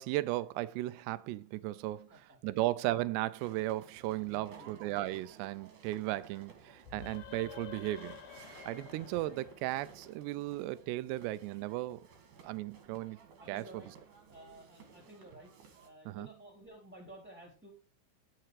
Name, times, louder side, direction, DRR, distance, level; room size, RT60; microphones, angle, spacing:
voice 1, 0.0-8.2 8.7-12.0 12.4-13.2 13.5-13.8 16.1-16.3, right 16 dB, 85° right, 2.4 m, -36 dB
sound 1, 3.4-15.9, right 6 dB, 55° right, 2.8 m, -57 dB
voice 2, 4.3-4.8 13.4-13.9 14.3-15.5 15.8-17.7, right 1 dB, 5° right, 2.9 m, -53 dB
sound 2, 6.8-10.4, left 8 dB, 70° left, 1.9 m, -51 dB
10.5 x 7.8 x 4.8 m
omnidirectional pair, 5.5 m